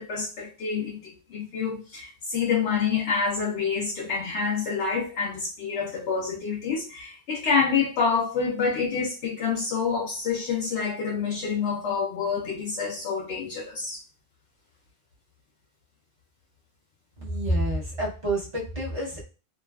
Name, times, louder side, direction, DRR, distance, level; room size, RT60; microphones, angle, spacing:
voice 1, 0.0-14.0, left 5 dB, 85° left, 0.9 m, -27 dB
voice 2, 17.2-19.2, right 1 dB, 35° right, 0.8 m, -28 dB
2.6 x 2.3 x 2.2 m
omnidirectional pair, 1.1 m